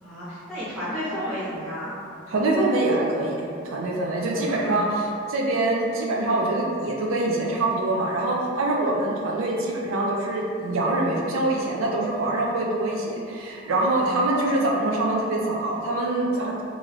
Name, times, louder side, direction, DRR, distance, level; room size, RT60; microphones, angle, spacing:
voice 1, 0.0-2.0 4.2-5.0 13.7-14.3, equal, ahead, -15 dB, 0.8 m, -33 dB
voice 2, 2.3-16.6, right 2 dB, 85° right, -2 dB, 0.4 m, -24 dB
3.1 x 2.5 x 2.6 m, 2.5 s
head